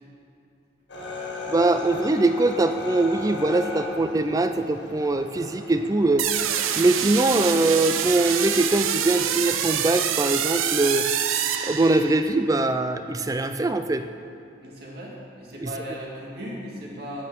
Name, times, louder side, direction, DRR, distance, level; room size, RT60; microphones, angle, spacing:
sound 1, 0.9-10.1, left 2 dB, 60° left, 1.8 m, -38 dB
voice 1, 1.5-6.3 6.8-11.1 11.6-14.0 15.6-15.7, right 2 dB, 15° right, 9 dB, 0.3 m, -22 dB
sound 2, 6.2-12.3, right 9 dB, 85° right, 0.6 m, -26 dB
voice 2, 14.6-17.3, equal, 50° right, -4 dB, 2.1 m, -37 dB
8.8 x 8.4 x 6.0 m, 2.7 s
head